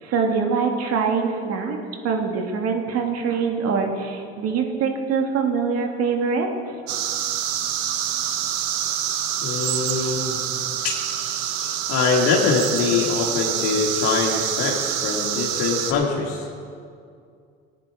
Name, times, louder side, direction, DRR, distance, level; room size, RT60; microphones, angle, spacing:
voice 1, 0.0-1.8 2.0-6.5, right 5 dB, 55° right, 3 dB, 1.8 m, -23 dB
sound 1, 6.9-15.9, right 10 dB, 75° right, 1.1 m, -26 dB
voice 2, 9.4-10.4 10.8-16.5, left 5 dB, 60° left, -2 dB, 1.7 m, -24 dB
15.5 x 9.5 x 4.6 m, 2.3 s
hypercardioid pair, 75°, 29 cm